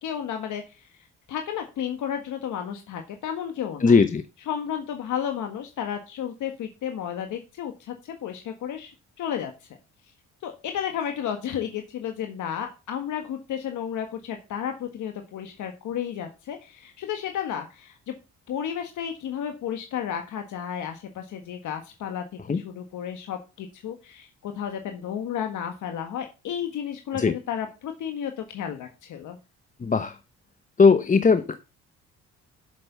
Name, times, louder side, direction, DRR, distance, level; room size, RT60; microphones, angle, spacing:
voice 1, 0.0-1.0 1.3-4.0 4.5-9.5 10.4-18.1 18.5-29.4, left 9 dB, 80° left, 5 dB, 1.6 m, -32 dB
voice 2, 3.8-4.2 22.5-22.6 27.1-27.3 29.8-30.2 30.8-31.6, left 5 dB, 25° left, 10 dB, 0.9 m, -18 dB
8.0 x 6.9 x 6.8 m, 0.29 s
cardioid pair, 90°, 30 cm